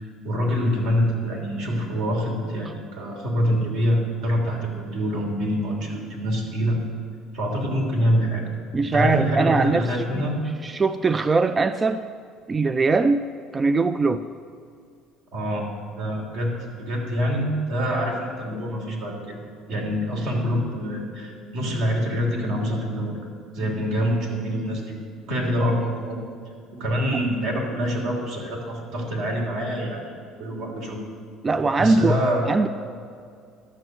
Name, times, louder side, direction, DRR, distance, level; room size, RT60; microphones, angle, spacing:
voice 1, 0.0-6.8 7.3-8.4 8.9-10.4 15.3-15.7 16.0-19.4 19.7-23.2 23.5-25.0 25.3-26.2 26.7-30.0 30.4-31.0 31.8-32.5, equal, 80° right, -1 dB, 3.1 m, -25 dB
voice 2, 8.7-10.3 10.6-12.0 12.5-13.2 13.5-14.2 31.4-32.2 32.5-32.7, right 4 dB, 25° right, 11 dB, 0.3 m, -21 dB
12.5 x 6.1 x 7.9 m, 2.3 s
supercardioid pair, 105°, 0 cm